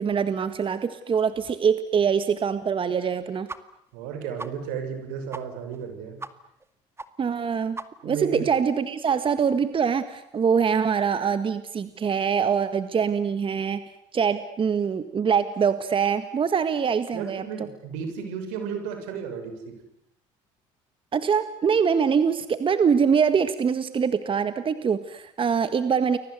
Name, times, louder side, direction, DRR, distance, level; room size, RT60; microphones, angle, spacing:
voice 1, 0.0-3.5 7.2-7.8 8.0-13.8 14.1-17.4 21.1-26.2, right 6 dB, 35° right, 11 dB, 1.7 m, -24 dB
sound 1, 3.5-3.6 3.9-4.0 4.4-4.5 4.9-5.0 5.3-5.4 5.7-5.8 6.2-6.3 6.6-6.7 7.0-7.1 7.4-7.5 7.7-8.2, right 3 dB, 15° right, 2.1 m, -37 dB
voice 2, 3.9-6.2 8.0-8.5 17.1-19.8, right 7 dB, 80° right, 7 dB, 6.5 m, -34 dB
29.5 x 23.0 x 8.1 m, 0.75 s
supercardioid pair, 80°, 14 cm